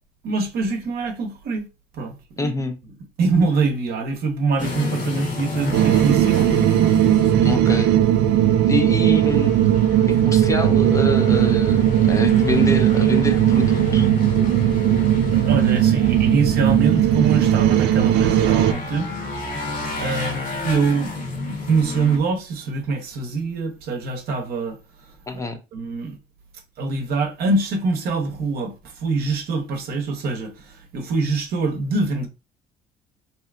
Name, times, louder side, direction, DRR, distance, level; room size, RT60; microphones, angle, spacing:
voice 1, 0.2-1.7 1.9-2.5 3.2-6.5 15.3-19.2 20.0-21.1 21.5-25.2 25.7-26.2 26.8-32.3, right 4 dB, 65° right, 0.8 m, -24 dB
voice 2, 2.4-2.8 7.4-7.9 8.7-9.5 10.1-14.1 25.3-25.6, left 3 dB, 20° left, 0.4 m, -26 dB
sound 1, 4.6-22.2, left 2 dB, 50° left, 1.0 m, -30 dB
sound 2, 5.7-18.7, right 12 dB, 85° right, 0.4 m, -17 dB
3.3 x 2.8 x 2.4 m
cardioid pair, 110°, 17 cm